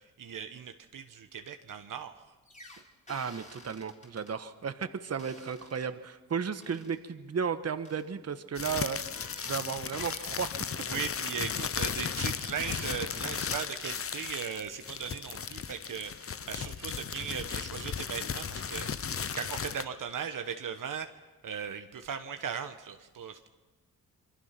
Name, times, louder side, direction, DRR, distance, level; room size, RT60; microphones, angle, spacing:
voice 1, 0.0-2.1 10.9-21.1 21.4-23.5, right 7 dB, 65° right, 7 dB, 1.2 m, -38 dB
sound 1, 2.5-4.3 5.2-5.9 6.6-7.0 7.8-8.0 8.9-9.6 9.9-10.4 11.9-12.4 12.6-12.8, left 1 dB, 20° left, 4.0 m, -50 dB
voice 2, 3.1-10.5, right 6 dB, 45° right, 10 dB, 1.3 m, -34 dB
sound 2, 8.6-19.8, left 7 dB, 40° left, 0.8 m, -36 dB
26.5 x 24.0 x 5.9 m, 1.1 s
cardioid pair, 90°, 34 cm